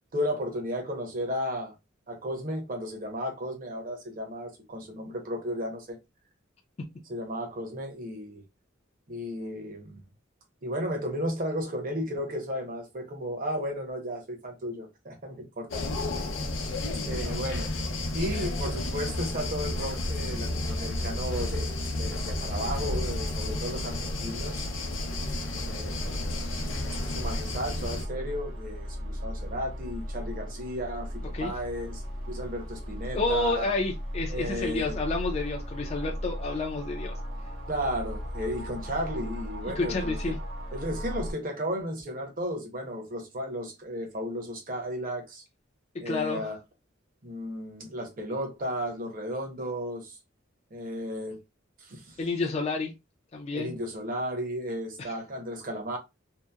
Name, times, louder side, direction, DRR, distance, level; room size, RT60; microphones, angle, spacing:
voice 1, 0.1-1.7 2.1-6.0 7.1-8.4 9.1-10.0 10.6-15.8 16.8-17.7 18.1-21.7 22.0-24.7 25.6-26.3 27.1-33.7 34.3-35.0 37.7-40.3 40.7-45.4 46.0-46.6 47.2-50.2 50.7-51.4 51.8-52.2 53.5-56.0, equal, 45° right, 0.8 m, -34 dB
sound 1, 15.7-28.1, left 2 dB, 80° left, 0.6 m, -31 dB
sound 2, 22.2-41.3, equal, 90° right, 0.9 m, -38 dB
voice 2, 33.1-37.2 39.8-40.4 46.1-46.5 52.2-52.9 53.3-53.7 55.0-55.1, left 3 dB, 35° left, 0.4 m, -30 dB
2.8 x 2.0 x 2.3 m
head